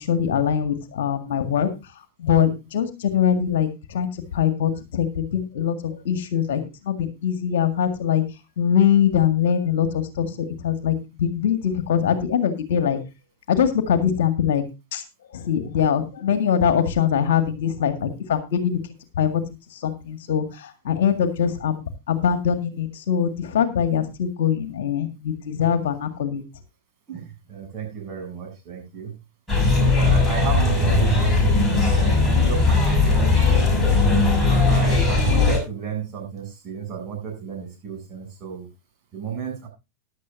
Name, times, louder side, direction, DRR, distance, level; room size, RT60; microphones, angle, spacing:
voice 1, 0.0-8.2 8.6-13.0 13.5-14.6 14.9-15.0 15.3-18.8 19.2-19.4 19.7-26.4, left 8 dB, 55° left, 10 dB, 1.8 m, -23 dB
voice 2, 27.5-29.1 29.9-33.5 34.6-38.7 39.1-39.7, right 7 dB, 30° right, 1 dB, 8.0 m, -33 dB
sound 1, 29.5-35.6, left 3 dB, 5° left, 6.3 m, -18 dB
16.0 x 11.0 x 2.6 m, 0.26 s
figure-of-eight pair, 90°, 0 cm